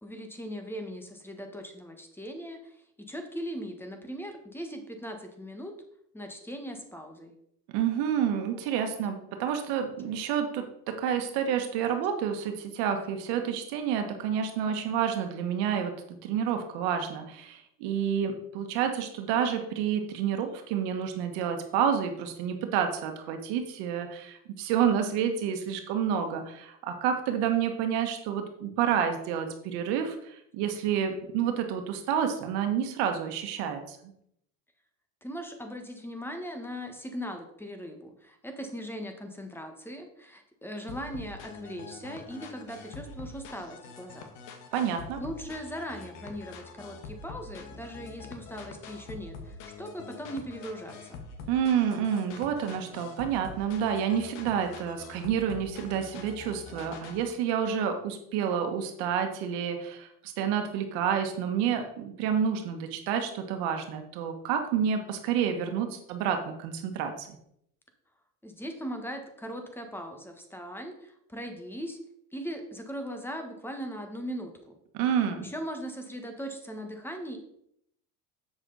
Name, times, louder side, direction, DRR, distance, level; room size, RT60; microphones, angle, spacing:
voice 1, 0.0-2.8 3.1-5.7 6.1-7.3 8.5-8.6 35.2-44.3 45.2-51.2 68.4-72.0 72.3-74.8 75.4-77.4, equal, 5° left, 5 dB, 1.4 m, -39 dB
voice 2, 7.7-15.9 16.2-34.0 44.7-45.2 51.5-67.3 74.9-75.5, right 8 dB, 80° right, 5 dB, 1.4 m, -29 dB
sound 1, 40.9-57.3, left 4 dB, 85° left, 1.4 m, -45 dB
7.8 x 6.3 x 4.0 m, 0.72 s
supercardioid pair, 110°, 39 cm